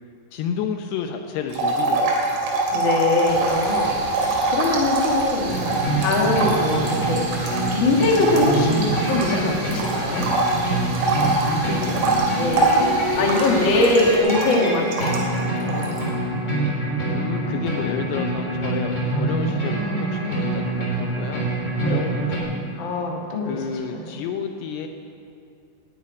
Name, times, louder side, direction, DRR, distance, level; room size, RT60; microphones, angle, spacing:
voice 1, 0.3-2.4 11.4-13.7 17.0-21.5 21.9-22.5 23.5-24.9, left 7 dB, 75° left, 5 dB, 2.6 m, -32 dB
sound 1, 1.5-9.4 9.7-15.4 15.7-16.0, right 2 dB, 80° right, 5.0 m, -24 dB
voice 2, 2.7-10.3 12.4-12.9 13.1-15.9 21.8-22.2 22.8-23.5 24.0-24.2, left 2 dB, 55° left, -1 dB, 1.3 m, -23 dB
sound 2, 3.3-14.2, right 3 dB, 55° right, 2.8 m, -35 dB
sound 3, 5.5-22.4, right 1 dB, 20° left, 2.9 m, -25 dB
11.5 x 10.0 x 9.5 m, 2.4 s
omnidirectional pair, 5.3 m